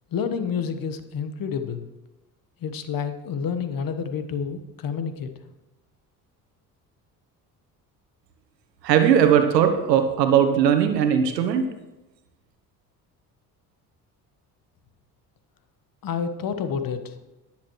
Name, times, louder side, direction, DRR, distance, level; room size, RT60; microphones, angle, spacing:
voice 1, 0.1-1.9 2.6-5.3 16.0-17.1, left 6 dB, 45° left, 9 dB, 1.3 m, -29 dB
voice 2, 8.8-11.6, right 8 dB, 85° right, 7 dB, 1.2 m, -19 dB
18.0 x 7.4 x 3.2 m, 1.0 s
hypercardioid pair, 55°, 48 cm